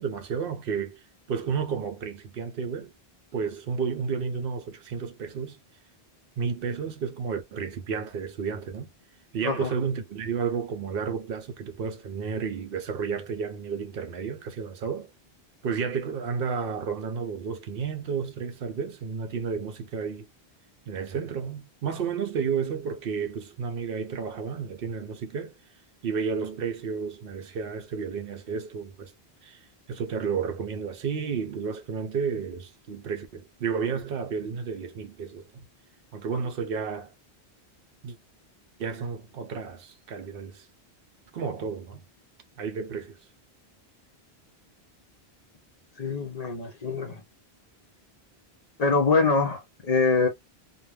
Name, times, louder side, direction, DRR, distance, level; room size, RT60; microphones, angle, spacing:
voice 1, 0.0-2.9 3.3-5.6 6.4-8.9 9.3-15.1 15.6-20.3 20.9-25.5 26.0-29.1 29.4-35.5 36.1-37.1 38.0-38.2 38.8-40.7 41.3-42.0 42.6-43.2, right 6 dB, 65° right, 0.7 m, -32 dB
voice 2, 46.0-47.2 48.8-50.3, left 3 dB, 50° left, 0.5 m, -24 dB
2.4 x 2.1 x 3.2 m
omnidirectional pair, 1.1 m